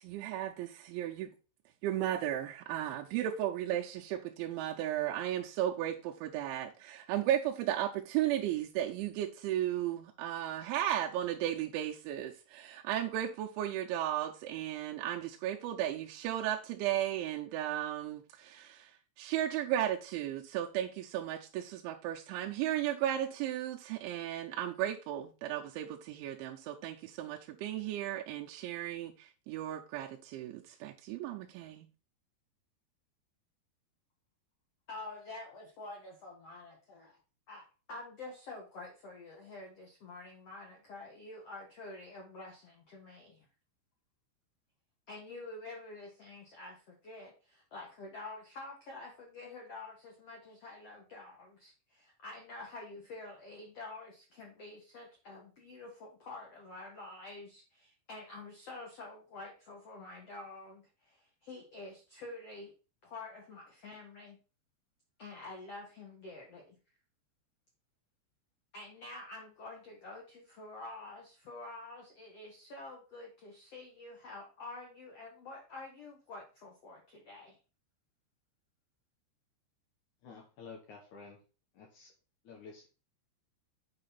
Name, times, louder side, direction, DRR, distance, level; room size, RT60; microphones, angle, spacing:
voice 1, 0.0-1.3 1.8-31.9, right 12 dB, 85° right, 3.0 m, -35 dB
voice 2, 34.9-37.2 37.5-43.4 45.1-62.7 63.0-64.4 65.2-66.8 68.7-77.6, left 2 dB, 90° left, 1.3 m, -48 dB
voice 3, 80.2-81.4 81.7-82.1 82.4-82.9, left 5 dB, 70° left, 1.8 m, -51 dB
8.6 x 4.9 x 4.1 m
omnidirectional pair, 5.3 m